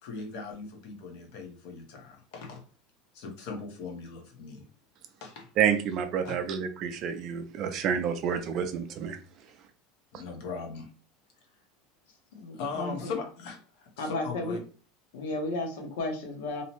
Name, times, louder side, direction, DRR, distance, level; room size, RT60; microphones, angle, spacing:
voice 1, 0.0-2.6 3.1-4.7 5.2-5.5 6.2-6.3 10.1-10.9 12.5-14.6, left 4 dB, 50° left, 3 dB, 0.8 m, -39 dB
voice 2, 5.6-9.2, right 8 dB, 35° right, 8 dB, 0.3 m, -29 dB
voice 3, 12.3-13.1 14.0-14.6 15.1-16.6, left 2 dB, 90° left, 3 dB, 0.8 m, -33 dB
2.7 x 2.1 x 2.9 m, 0.37 s
supercardioid pair, 175°, 0 cm